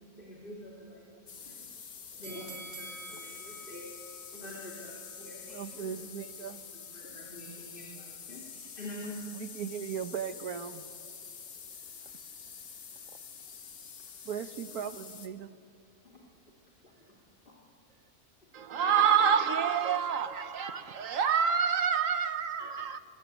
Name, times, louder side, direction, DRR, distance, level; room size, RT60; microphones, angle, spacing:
voice 1, 0.0-1.8 2.1-3.9 4.3-5.9 6.4-9.2 11.5-11.9 12.9-13.0 13.4-13.5 16.1-16.2 16.8-17.1 17.4-17.6, left 1 dB, 35° left, 3.2 m, -47 dB
sound 1, 1.3-15.3, left 6 dB, 80° left, 1.8 m, -47 dB
sound 2, 2.2-5.3 5.7-5.8, right 4 dB, 30° right, 1.9 m, -49 dB
voice 2, 5.5-6.6 9.4-10.9 14.2-15.5, right 8 dB, 90° right, 1.5 m, -38 dB
voice 3, 18.5-23.0, right 7 dB, 60° right, 1.3 m, -27 dB
21.5 x 21.0 x 9.1 m
omnidirectional pair, 1.6 m